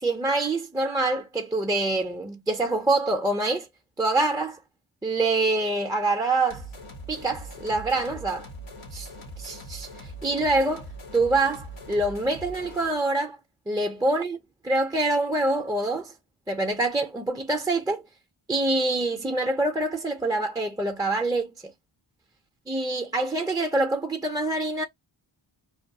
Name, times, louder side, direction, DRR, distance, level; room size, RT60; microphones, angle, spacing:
voice 1, 0.0-3.7 4.0-4.6 5.0-6.6 7.1-8.5 8.9-9.1 9.4-10.8 11.1-13.4 13.7-14.4 14.6-16.1 16.5-18.0 18.5-21.5 22.7-24.8, right 2 dB, 10° right, 0.3 m, -25 dB
sound 1, 6.5-13.0, right 1 dB, 85° left, 0.9 m, -41 dB
2.3 x 2.3 x 2.6 m
wide cardioid pair, 85°, 47 cm